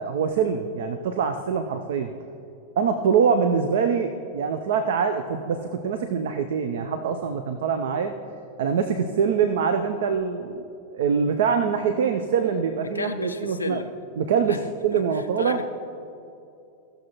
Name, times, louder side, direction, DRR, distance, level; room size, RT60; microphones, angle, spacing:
voice 1, 0.0-2.1 2.8-8.1 8.6-10.6 10.9-13.8 14.2-15.6, right 6 dB, 60° right, 8 dB, 0.5 m, -24 dB
voice 2, 12.9-13.9 14.5-14.6 14.9-15.6, left 3 dB, 80° left, 6 dB, 0.3 m, -32 dB
16.0 x 6.6 x 2.9 m, 2.6 s
figure-of-eight pair, 90°, 0 cm